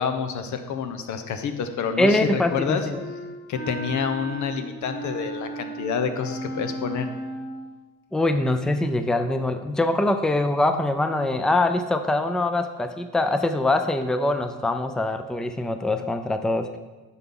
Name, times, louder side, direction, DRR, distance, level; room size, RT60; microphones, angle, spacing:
voice 1, 0.0-2.9 3.5-7.1, left 6 dB, 75° left, 8 dB, 0.9 m, -28 dB
voice 2, 2.0-3.0 8.1-16.8, left 2 dB, ahead, 8 dB, 0.5 m, -23 dB
Wind instrument woodwind instrument, 2.9-7.7, right 1 dB, 40° left, 1.5 m, -35 dB
9.7 x 5.6 x 3.7 m, 1.3 s
cardioid pair, 90°, 30 cm